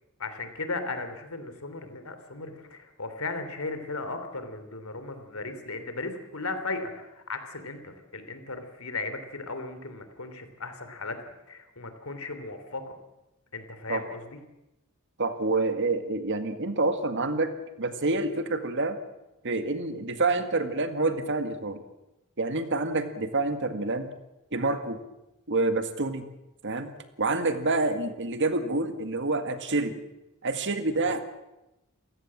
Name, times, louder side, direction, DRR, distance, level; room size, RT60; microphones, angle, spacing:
voice 1, 0.2-12.9 13.5-14.4 31.0-31.2, left 3 dB, 70° left, 9 dB, 3.2 m, -36 dB
voice 2, 15.2-17.5 17.8-19.0 19.4-21.8 22.4-24.1 24.5-25.0 25.5-26.2 26.6-26.9 27.2-30.0 30.4-31.2, right 3 dB, 55° right, 9 dB, 2.0 m, -27 dB
28.5 x 16.0 x 7.5 m, 0.94 s
head